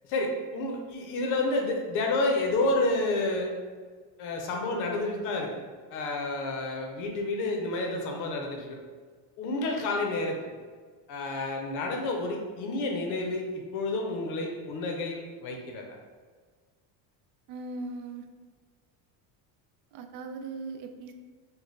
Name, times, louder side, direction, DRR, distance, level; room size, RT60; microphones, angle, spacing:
voice 1, 0.1-3.5 4.2-5.5 5.9-8.8 9.4-10.4 11.1-15.8, left 2 dB, 45° left, 2 dB, 0.5 m, -30 dB
voice 2, 17.5-18.3 19.9-21.1, right 3 dB, 85° right, 7 dB, 0.5 m, -39 dB
3.9 x 2.1 x 3.1 m, 1.6 s
cardioid pair, 165°, 46 cm